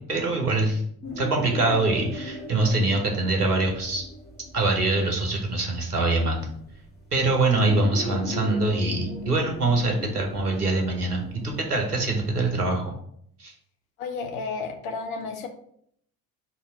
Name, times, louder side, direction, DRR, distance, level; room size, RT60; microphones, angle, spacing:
voice 1, 0.1-0.8 1.2-4.0 4.5-6.5 7.1-12.9 13.4-13.5, right 2 dB, 90° right, 1 dB, 0.9 m, -24 dB
sound 1, 1.0-12.8, left 1 dB, 20° left, 1.4 m, -38 dB
voice 2, 9.8-10.1 14.0-15.5, left 4 dB, 65° left, 4 dB, 0.8 m, -33 dB
4.3 x 2.8 x 4.2 m, 0.67 s
figure-of-eight pair, 50°, 45 cm